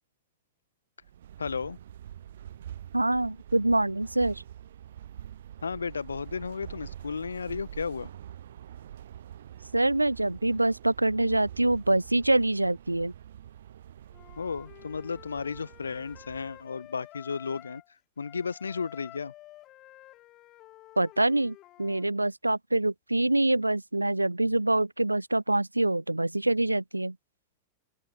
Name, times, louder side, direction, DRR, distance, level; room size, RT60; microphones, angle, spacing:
sound 1, 1.0-16.8, right 10 dB, 60° right, 0.8 m, -46 dB
voice 1, 1.4-1.8 5.6-8.1 14.4-17.8 18.2-19.3, left 5 dB, 75° left, 1.4 m, -34 dB
voice 2, 2.9-4.4 9.7-13.1 21.0-27.1, right 2 dB, 85° right, 0.3 m, -25 dB
Wind instrument woodwind instrument, 14.1-17.9 18.2-22.0, left 16 dB, 35° left, 3.8 m, -51 dB
open air
figure-of-eight pair, 90°, 0 cm